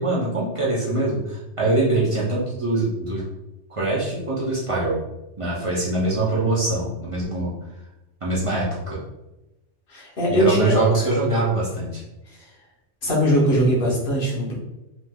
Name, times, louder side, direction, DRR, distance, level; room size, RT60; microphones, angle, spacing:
voice 1, 0.0-3.2 3.7-5.0 5.4-7.5 8.2-9.0 10.3-12.0, right 2 dB, 40° right, -6 dB, 0.5 m, -23 dB
voice 2, 9.9-10.7 13.0-14.5, equal, 55° left, -3 dB, 1.0 m, -20 dB
3.1 x 2.7 x 2.2 m, 0.96 s
omnidirectional pair, 1.2 m